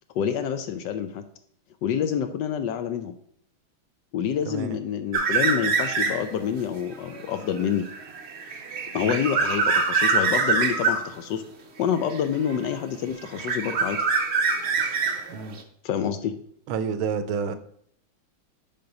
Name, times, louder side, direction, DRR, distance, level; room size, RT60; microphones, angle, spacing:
voice 1, 0.1-1.2 1.8-3.1 4.1-7.9 8.9-11.4 11.8-14.0 15.8-16.3, left 8 dB, 75° left, 9 dB, 1.1 m, -27 dB
voice 2, 4.5-4.8 9.0-9.2 15.3-15.6 16.7-17.6, right 6 dB, 85° right, 11 dB, 1.5 m, -29 dB
sound 1, 5.1-6.4 6.8-11.1 12.1-12.9 13.2-15.6, right 4 dB, 55° right, 0.7 m, -25 dB
5.8 x 5.1 x 5.2 m, 0.65 s
omnidirectional pair, 2.2 m